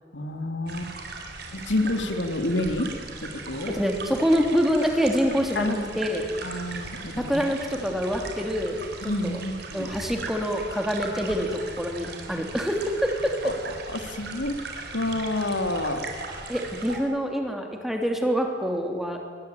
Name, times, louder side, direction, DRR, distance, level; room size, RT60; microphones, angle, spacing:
voice 1, 0.1-0.9 1.5-2.9 3.2-3.8 5.5-5.9 6.4-7.4 9.0-9.9 13.4-13.5 13.9-14.5 14.9-16.1, left 1 dB, 75° left, 6 dB, 2.7 m, -28 dB
sound 1, 0.7-17.0, right 3 dB, 60° right, 4.2 m, -38 dB
voice 2, 3.7-6.2 7.2-8.8 9.0-9.4 9.7-13.1 16.5-19.2, equal, ahead, 3 dB, 3.2 m, -26 dB
23.0 x 20.5 x 9.3 m, 2.2 s
head